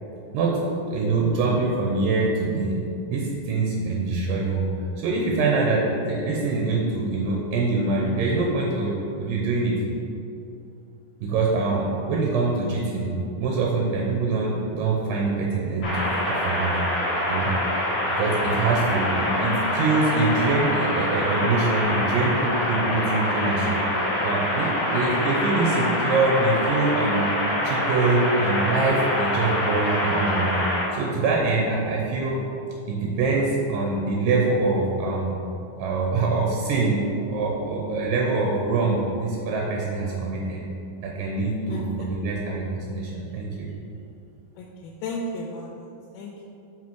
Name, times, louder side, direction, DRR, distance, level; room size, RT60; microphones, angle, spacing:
voice 1, 0.9-2.8 3.1-4.7 5.0-9.8 11.2-16.7 17.3-17.5 18.1-27.2 27.6-30.6 30.9-32.4 32.9-35.3 35.8-37.0 37.3-40.6 41.0-43.7, right 3 dB, 75° right, -2 dB, 2.2 m, -24 dB
sound 1, 15.8-30.8, left 1 dB, 55° left, 1.7 m, -25 dB
voice 2, 41.7-42.1 44.6-45.7 46.1-46.5, left 1 dB, 90° left, -1 dB, 2.5 m, -34 dB
6.0 x 4.8 x 4.5 m, 2.7 s
omnidirectional pair, 4.3 m